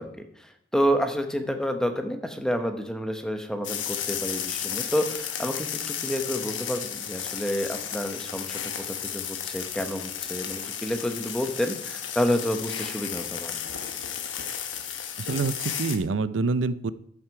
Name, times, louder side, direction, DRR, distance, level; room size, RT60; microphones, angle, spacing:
voice 1, 0.0-13.6, equal, 5° left, 6 dB, 0.9 m, -29 dB
sound 1, 3.6-16.0, left 9 dB, 90° left, 1.1 m, -33 dB
voice 2, 15.2-16.9, right 3 dB, 85° right, 14 dB, 0.5 m, -26 dB
13.0 x 6.1 x 4.7 m, 0.69 s
head